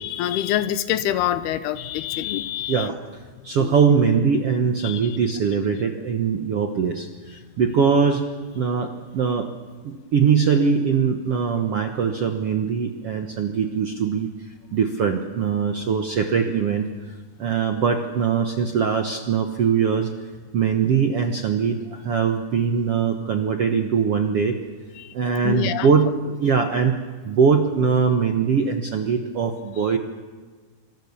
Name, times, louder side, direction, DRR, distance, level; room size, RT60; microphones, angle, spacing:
voice 1, 0.0-2.9 3.6-3.7 4.8-5.2 25.0-25.1 25.4-25.9, left 12 dB, 85° left, 13 dB, 2.9 m, -26 dB
voice 2, 2.7-3.0 3.4-8.2 8.5-9.5 9.8-14.3 14.7-16.9 17.4-20.1 20.5-24.6 25.1-27.0 27.2-30.0, right 6 dB, 65° right, 5 dB, 1.4 m, -21 dB
26.5 x 25.0 x 7.1 m, 1.4 s
omnidirectional pair, 4.5 m